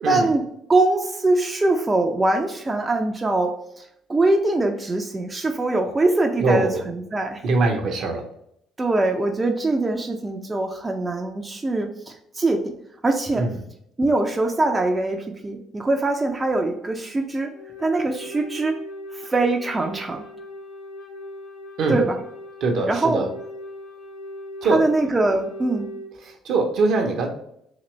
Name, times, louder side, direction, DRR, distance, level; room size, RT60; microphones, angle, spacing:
voice 1, 0.1-0.4 0.7-7.4 8.8-12.7 13.0-13.5 14.0-17.5 17.8-18.8 19.1-20.2 21.9-22.2 22.9-23.2 24.7-25.9, right 2 dB, 25° right, 3 dB, 0.6 m, -22 dB
voice 2, 6.4-6.8 7.4-8.3 13.3-13.6 21.8-22.0 22.6-23.3 24.6-24.8 26.2-27.3, right 3 dB, 60° right, 3 dB, 0.8 m, -22 dB
Wind instrument woodwind instrument, 17.5-26.1, left 1 dB, 70° left, 0.9 m, -39 dB
3.9 x 2.9 x 3.1 m, 0.74 s
hypercardioid pair, 55°, 0 cm